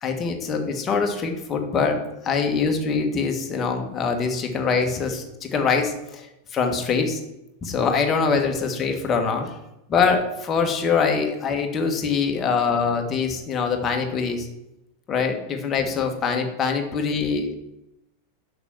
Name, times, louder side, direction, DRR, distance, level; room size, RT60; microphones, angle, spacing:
voice 1, 0.0-7.2 7.6-9.5 9.9-14.5 15.1-17.5, left 5 dB, 25° left, 4 dB, 1.5 m, -24 dB
6.7 x 5.9 x 7.1 m, 0.89 s
figure-of-eight pair, 90°, 0 cm